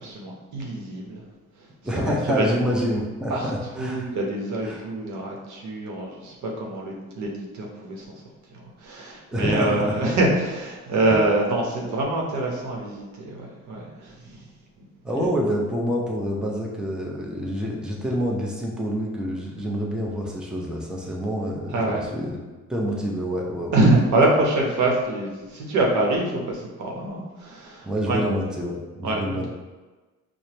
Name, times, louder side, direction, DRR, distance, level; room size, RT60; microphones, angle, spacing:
voice 1, 0.0-1.2 1.6-2.0 2.4-2.5 3.3-8.1 8.5-14.5 21.7-22.1 23.7-28.2 29.0-29.5, right 2 dB, 75° right, -1 dB, 0.9 m, -25 dB
voice 2, 1.8-4.1 4.6-4.8 9.3-10.2 11.1-11.2 15.0-22.4 22.7-23.8 27.8-29.5, equal, 5° right, -2 dB, 0.6 m, -27 dB
4.8 x 2.2 x 2.9 m, 1.2 s
cardioid pair, 90°, 30 cm